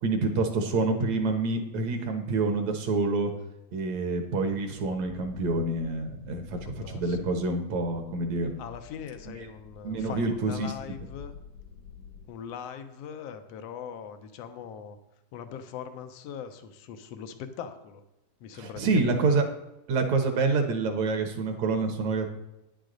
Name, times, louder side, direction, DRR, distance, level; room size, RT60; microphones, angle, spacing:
voice 1, 0.0-3.3 3.7-8.5 9.8-10.7 18.6-19.4 19.9-22.3, right 3 dB, 65° right, 5 dB, 2.3 m, -27 dB
sound 1, 4.3-12.3, left 6 dB, 60° left, 1.4 m, -49 dB
voice 2, 6.6-7.4 8.6-11.4 12.3-15.0 15.3-18.0 18.4-19.3, left 7 dB, 75° left, 8 dB, 1.5 m, -41 dB
10.0 x 9.9 x 3.9 m, 0.91 s
omnidirectional pair, 3.7 m